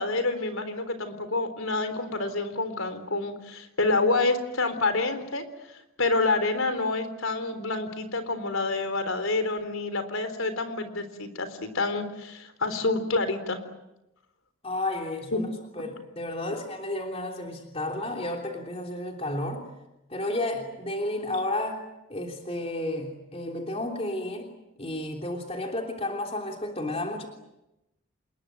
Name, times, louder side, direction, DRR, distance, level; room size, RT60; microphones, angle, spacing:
voice 1, 0.0-5.4 6.0-13.6, left 3 dB, 75° left, 10 dB, 3.8 m, -28 dB
voice 2, 14.6-15.5 15.8-19.6 20.1-21.8 22.1-24.5 24.8-27.3, left 1 dB, 30° left, 2 dB, 3.2 m, -32 dB
28.0 x 21.5 x 9.2 m, 0.91 s
head